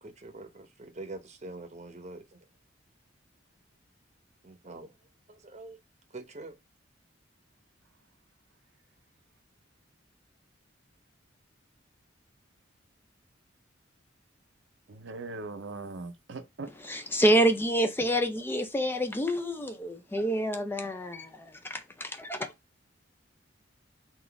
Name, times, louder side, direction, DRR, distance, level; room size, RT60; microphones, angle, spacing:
voice 1, 0.0-2.4 4.4-5.0 5.3-5.8 6.1-6.5, right 2 dB, 35° right, 0.8 m, -44 dB
voice 2, 14.9-16.7, right 3 dB, 70° right, 0.6 m, -40 dB
voice 3, 16.8-22.5, right 1 dB, 10° left, 0.4 m, -28 dB
3.9 x 2.4 x 3.4 m
head